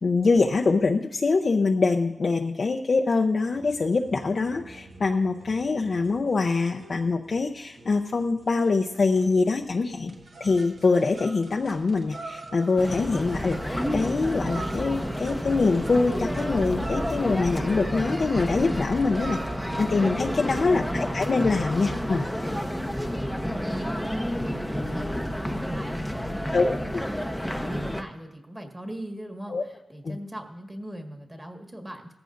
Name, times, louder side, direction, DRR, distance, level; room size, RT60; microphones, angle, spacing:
voice 1, 0.0-10.1 10.4-19.4 19.8-22.2 26.5-27.0 29.5-29.6 30.0-30.2, left 3 dB, 50° left, 2 dB, 0.6 m, -24 dB
sound 1, 3.5-20.5, right 3 dB, 70° right, 1.5 m, -44 dB
sound 2, 12.8-28.0, equal, ahead, 0.8 m, -30 dB
voice 2, 20.5-21.1 22.8-32.1, right 1 dB, 15° right, 2 dB, 1.7 m, -41 dB
17.5 x 14.5 x 2.6 m, 0.90 s
wide cardioid pair, 95°, 0 cm